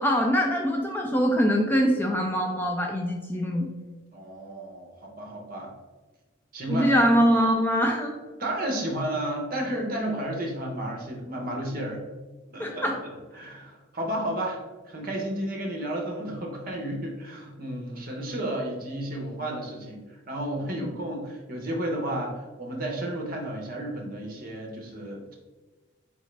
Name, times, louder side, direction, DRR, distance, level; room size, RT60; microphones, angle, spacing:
voice 1, 0.0-3.7 6.7-8.1 12.6-12.9 20.8-20.9, equal, 10° left, 1 dB, 0.3 m, -23 dB
voice 2, 4.1-5.7 6.5-6.9 8.4-12.0 12.5-25.3, right 1 dB, 45° right, 1 dB, 0.9 m, -32 dB
4.2 x 3.7 x 3.2 m, 1.2 s
head